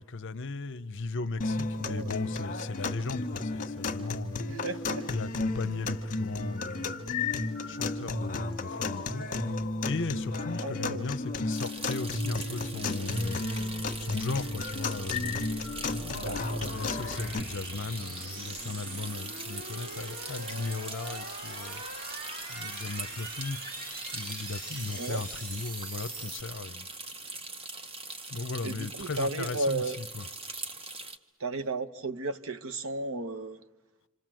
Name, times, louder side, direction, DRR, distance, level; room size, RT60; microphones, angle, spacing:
voice 1, 0.0-4.5 5.1-9.3 9.8-13.7 14.0-15.5 15.8-23.6 24.1-26.9 28.3-30.2, left 3 dB, 55° left, 0.8 m, -37 dB
sound 1, 1.4-17.4, left 3 dB, 40° left, 1.5 m, -33 dB
voice 2, 1.8-2.2 4.5-5.1 10.6-11.1 16.1-16.7 24.9-25.2 28.6-30.0 31.4-33.6, right 2 dB, 65° right, 1.1 m, -34 dB
sound 2, 11.5-31.2, right 3 dB, 25° right, 1.2 m, -42 dB
sound 3, 14.7-26.4, right 2 dB, 40° right, 3.2 m, -43 dB
28.0 x 26.5 x 7.7 m
head